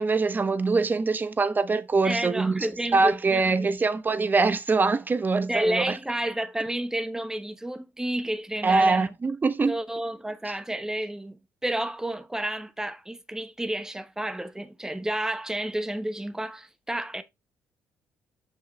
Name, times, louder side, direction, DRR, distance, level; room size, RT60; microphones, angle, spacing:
voice 1, 0.0-2.7 2.9-6.0 8.6-9.8, right 3 dB, 30° right, 1.1 m, -23 dB
voice 2, 2.0-3.8 5.5-9.1 9.7-17.2, right 1 dB, 10° right, 1.1 m, -31 dB
7.4 x 5.5 x 3.3 m
supercardioid pair, 65°, 6 cm